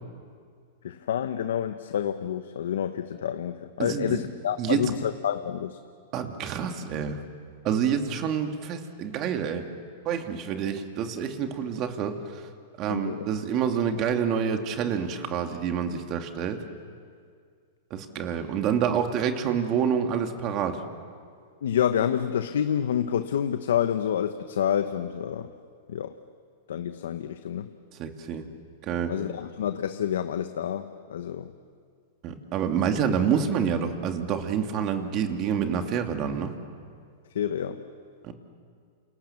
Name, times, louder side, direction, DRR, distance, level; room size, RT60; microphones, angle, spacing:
voice 1, 0.8-5.8 12.9-13.2 21.6-25.5 25.9-26.2 26.7-27.7 29.1-31.5 37.3-37.8, left 9 dB, 80° left, 9 dB, 1.1 m, -28 dB
voice 2, 3.8-4.2 4.6-4.8 6.1-7.2 7.6-9.7 10.0-12.4 12.8-16.6 17.9-20.8 28.0-28.4 28.8-29.1 32.2-36.5 38.2-38.3, right 7 dB, 40° right, 5 dB, 2.6 m, -27 dB
28.5 x 28.0 x 7.3 m, 2.1 s
hypercardioid pair, 135°, 0 cm